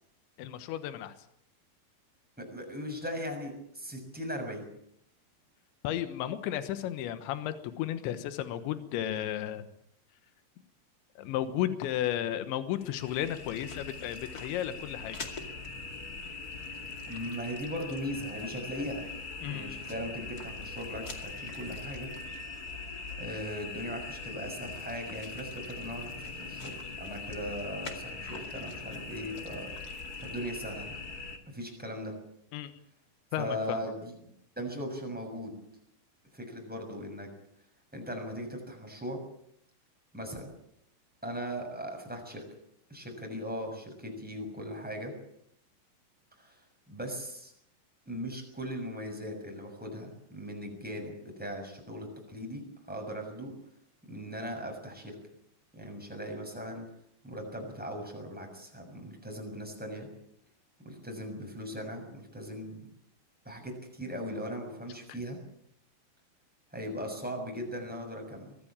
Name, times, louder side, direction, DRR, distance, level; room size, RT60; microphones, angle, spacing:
voice 1, 0.4-1.2 5.8-9.7 11.2-15.3 19.4-19.8 32.5-32.7 33.3-33.8 65.1-65.2, left 11 dB, 80° left, 10 dB, 3.5 m, -34 dB
voice 2, 2.4-4.7 17.1-19.0 19.4-22.2 23.2-26.1 26.4-29.7 30.2-31.0 31.5-32.1 33.4-34.1 34.6-35.5 36.3-37.3 37.9-39.2 40.1-40.5 41.2-42.4 42.9-45.1 46.4-46.6 46.9-47.5 48.1-53.5 54.1-55.1 55.7-56.9 57.2-60.1 60.8-62.8 63.4-65.4 66.7-68.5, equal, ahead, 2 dB, 6.2 m, -39 dB
sound 1, 12.8-31.4, left 3 dB, 35° left, 1.6 m, -41 dB
23.5 x 16.5 x 8.9 m, 0.73 s
omnidirectional pair, 5.2 m